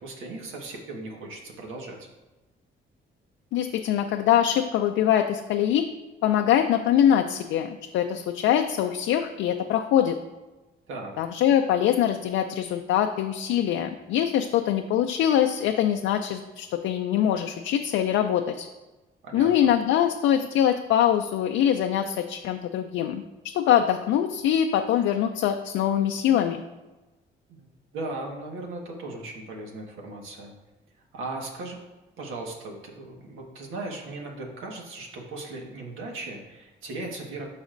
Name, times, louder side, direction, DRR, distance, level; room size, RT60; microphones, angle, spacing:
voice 1, 0.0-2.1 10.9-11.1 19.2-19.7 27.5-27.7 27.9-30.5 31.1-31.8 32.2-37.5, right 2 dB, 85° right, 0 dB, 1.6 m, -37 dB
voice 2, 3.5-5.8 6.2-10.2 11.2-18.7 19.3-23.2 23.5-26.6, left 10 dB, 85° left, 5 dB, 0.5 m, -23 dB
12.5 x 4.1 x 2.6 m, 1.1 s
cardioid pair, 90°, 20 cm